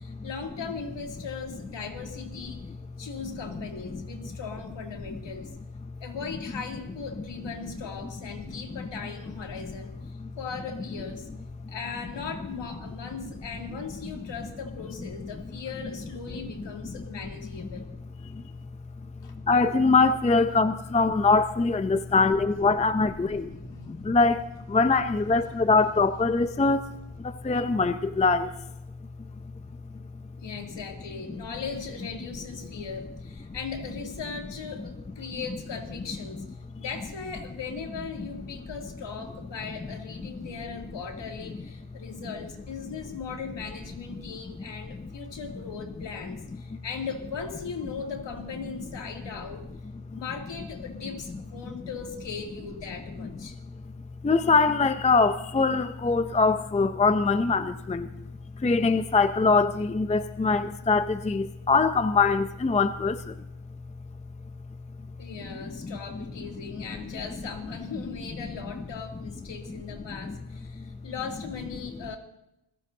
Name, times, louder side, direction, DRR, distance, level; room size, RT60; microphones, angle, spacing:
voice 1, 0.0-2.7 3.0-5.5 6.0-11.3 11.7-17.9 19.2-19.3 23.1-24.0 25.4-25.5 30.4-36.4 36.8-49.6 50.1-53.6 65.2-72.2, left 5 dB, 60° left, 2.8 m, -38 dB
voice 2, 19.5-23.6 23.9-26.9 27.2-28.5 50.1-50.2 51.6-51.7 54.2-58.1 58.6-63.4 65.8-66.2 70.1-70.4 70.8-70.9, left 4 dB, 15° left, 0.5 m, -23 dB
27.5 x 16.0 x 2.8 m
cardioid pair, 110°, 49 cm